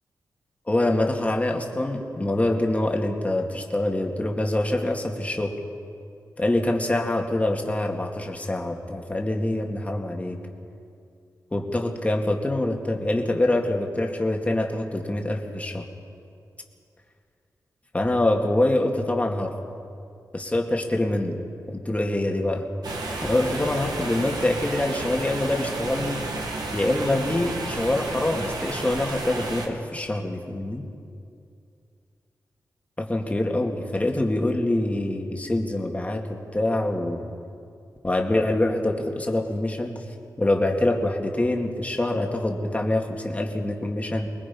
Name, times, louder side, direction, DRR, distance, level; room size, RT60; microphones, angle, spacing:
voice 1, 0.7-5.6 6.4-10.4 11.5-15.9 17.9-19.5 20.3-22.7 23.2-26.3 26.7-30.9 33.0-37.3 38.0-40.0 40.4-44.3, left 1 dB, 20° left, 2 dB, 2.2 m, -25 dB
sound 1, 22.8-29.7, right 2 dB, 80° right, 2.3 m, -32 dB
24.5 x 20.5 x 5.5 m, 2.4 s
wide cardioid pair, 85°, 7 cm